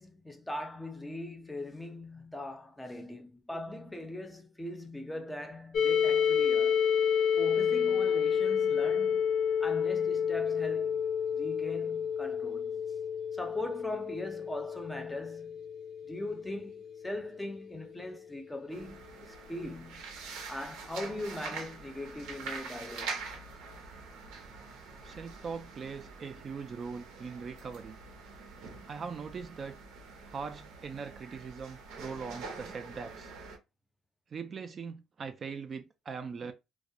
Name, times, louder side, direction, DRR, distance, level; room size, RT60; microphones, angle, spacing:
voice 1, 0.0-6.8 7.4-9.2 9.6-11.0 11.3-12.8 13.3-15.7 16.1-20.1 20.5-23.2, left 1 dB, 10° left, 0.6 m, -40 dB
sound 1, 5.7-17.4, left 7 dB, 65° left, 0.5 m, -30 dB
sound 2, 18.7-33.6, right 4 dB, 85° right, 0.7 m, -45 dB
voice 2, 25.0-28.0 28.9-29.8 30.3-33.3 34.3-36.5, right 5 dB, 45° right, 0.3 m, -41 dB
2.3 x 2.1 x 2.7 m
cardioid pair, 90°, 0 cm